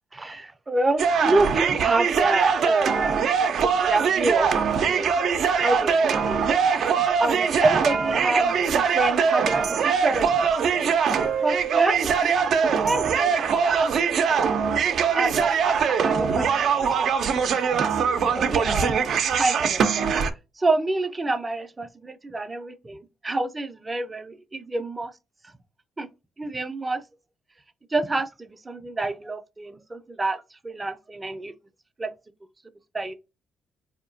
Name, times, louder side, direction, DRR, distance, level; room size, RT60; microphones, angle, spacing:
voice 1, 0.1-4.5 4.8-5.1 5.6-10.9 11.4-14.5 15.2-17.1 17.8-20.1 20.6-25.1 26.0-26.1 26.4-27.0 27.9-31.5 32.0-32.1 32.9-33.1, right 2 dB, 20° right, 0.6 m, -28 dB
sound 1, 1.0-20.3, right 6 dB, 65° right, 0.5 m, -22 dB
4.2 x 2.8 x 2.6 m
cardioid pair, 90°, 0 cm